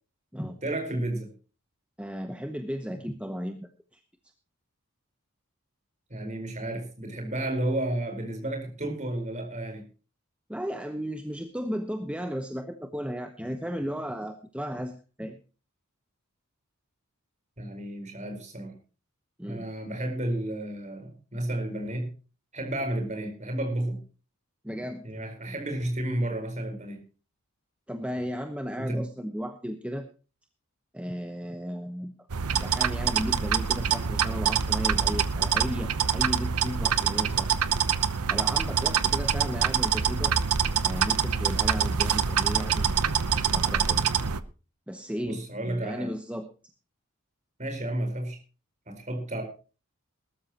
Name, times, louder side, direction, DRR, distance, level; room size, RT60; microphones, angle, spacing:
voice 1, 0.6-1.3 6.1-9.8 17.6-18.7 19.5-22.1 22.5-24.0 25.0-27.0 28.8-29.0 45.2-46.1 47.6-48.4 48.9-49.4, right 1 dB, 30° right, 4 dB, 4.5 m, -32 dB
voice 2, 2.0-4.0 10.5-15.4 19.4-19.6 24.6-25.0 27.9-30.1 30.9-32.1 32.6-37.5 38.3-40.3 40.8-43.0 43.5-44.0 44.9-46.5, equal, 5° right, 6 dB, 0.9 m, -35 dB
sound 1, 32.3-44.4, right 7 dB, 85° right, 0.9 m, -25 dB
20.0 x 13.0 x 3.0 m, 0.35 s
head